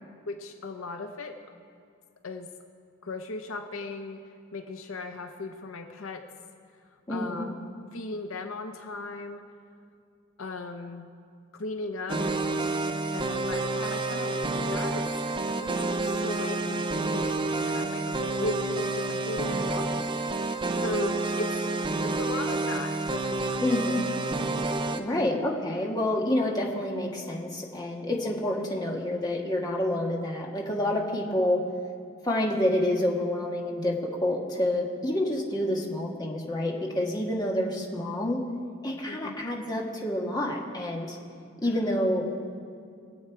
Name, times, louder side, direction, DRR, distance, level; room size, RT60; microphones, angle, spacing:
voice 1, 0.3-1.4 2.2-2.5 3.0-6.3 7.1-7.5 7.9-9.5 10.4-11.1 11.5-12.3 13.1-19.9 20.8-21.6 22.0-23.8 25.0-25.2 39.1-39.4 41.6-42.0, left 2 dB, 75° left, 5 dB, 0.8 m, -37 dB
voice 2, 7.1-7.5 12.1-12.4 19.3-19.8 23.6-24.0 25.0-31.6 32.2-38.4 38.8-41.2 41.6-42.3, left 1 dB, 20° left, -1 dB, 1.5 m, -28 dB
sound 1, 12.1-25.0, right 2 dB, 25° right, 0.5 m, -29 dB
22.5 x 8.0 x 4.6 m, 2.4 s
head